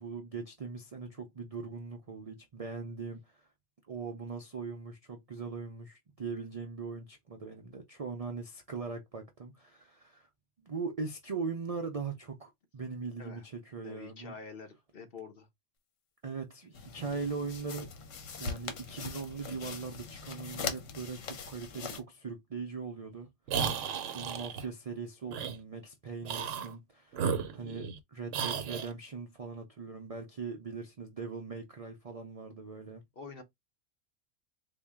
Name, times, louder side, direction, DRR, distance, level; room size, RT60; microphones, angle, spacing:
voice 1, 0.0-3.4 3.9-10.3 10.6-14.3 16.2-17.9 18.4-23.3 24.1-33.0, right 4 dB, 50° right, 0.4 m, -40 dB
voice 2, 13.8-15.5 27.1-27.4 33.1-33.4, left 5 dB, 50° left, 1.0 m, -47 dB
sound 1, 16.7-22.0, left 5 dB, 85° left, 1.2 m, -41 dB
sound 2, 23.5-24.6 25.3-25.6 26.2-26.7 27.1-28.0 28.3-28.9, right 6 dB, 85° right, 1.0 m, -34 dB
4.1 x 2.2 x 3.5 m
omnidirectional pair, 1.3 m